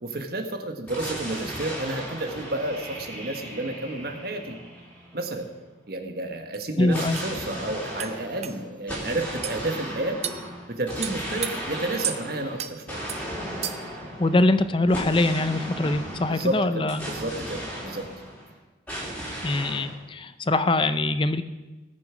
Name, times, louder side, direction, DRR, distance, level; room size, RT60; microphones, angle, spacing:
voice 1, 0.0-4.6 5.1-5.5 5.9-10.2 10.7-13.0 16.3-18.0, right 1 dB, 55° right, 5 dB, 1.3 m, -31 dB
sound 1, 0.9-5.6 6.9-18.5 18.9-19.9, equal, 10° left, 3.2 m, -36 dB
sound 2, 6.5-6.6 7.2-7.3 8.0-8.1 8.4-8.6 9.4-9.6 10.2-10.4 11.0-11.5 12.0-12.2 12.6-12.7 13.1-13.2 13.6-13.9, right 10 dB, 35° right, 0.5 m, -31 dB
voice 2, 6.8-7.2 14.2-17.1 19.4-21.4, left 2 dB, 25° left, 12 dB, 0.5 m, -23 dB
19.0 x 6.8 x 5.0 m, 1.2 s
head